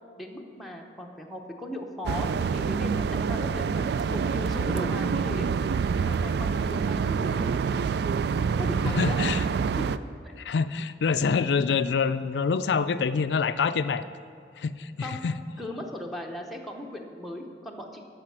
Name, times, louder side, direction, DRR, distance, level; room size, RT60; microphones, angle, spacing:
voice 1, 0.2-5.5 6.0-7.6 8.6-9.2 9.8-9.9 10.2-10.3 15.0-15.2 15.6-18.0, left 1 dB, ahead, 0 dB, 0.8 m, -38 dB
sound 1, 2.1-10.0, right 6 dB, 65° right, 0.3 m, -27 dB
voice 2, 8.8-9.4 10.4-14.0 14.6-15.3, left 5 dB, 70° left, 12 dB, 0.4 m, -26 dB
12.5 x 5.0 x 7.5 m, 2.2 s
head